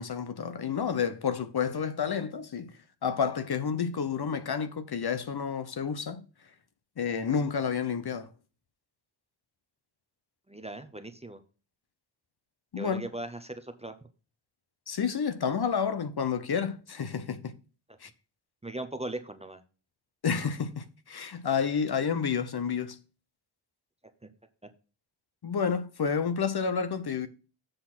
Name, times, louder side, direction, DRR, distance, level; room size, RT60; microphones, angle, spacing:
voice 1, 0.0-2.7 3.0-6.2 7.0-8.3 12.7-13.0 14.9-17.5 18.0-18.1 20.2-23.0 25.4-27.3, left 6 dB, 55° left, 0.7 m, -30 dB
voice 2, 10.5-11.4 12.8-13.9 18.6-19.6, right 1 dB, 15° right, 0.7 m, -38 dB
7.7 x 4.3 x 5.9 m
wide cardioid pair, 125°, 47 cm